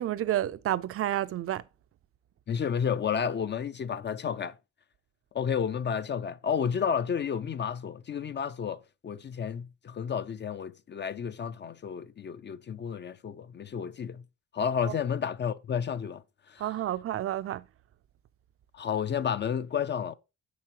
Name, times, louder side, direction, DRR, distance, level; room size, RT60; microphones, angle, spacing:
voice 1, 0.0-1.6 14.8-14.9 16.6-17.6, right 12 dB, 45° right, 0.5 m, -30 dB
voice 2, 2.5-4.5 5.3-14.2 14.5-16.2 16.5-16.7 18.7-20.1, left 7 dB, 35° left, 0.4 m, -31 dB
9.4 x 7.2 x 2.9 m
cardioid pair, 130°, 30 cm